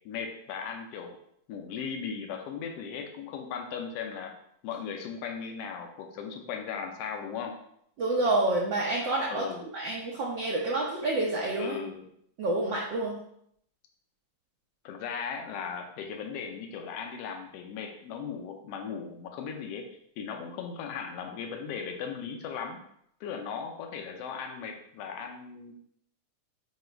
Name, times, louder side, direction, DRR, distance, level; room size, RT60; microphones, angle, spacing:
voice 1, 0.0-1.2 1.5-4.3 4.6-7.6 9.3-9.6 11.6-12.1 14.8-19.9 20.2-22.8 23.2-25.7, left 6 dB, 70° left, 4 dB, 1.5 m, -37 dB
voice 2, 8.0-9.4 9.7-11.8 12.4-13.2, right 2 dB, 75° right, -4 dB, 1.0 m, -28 dB
7.9 x 3.0 x 4.5 m, 0.70 s
omnidirectional pair, 3.5 m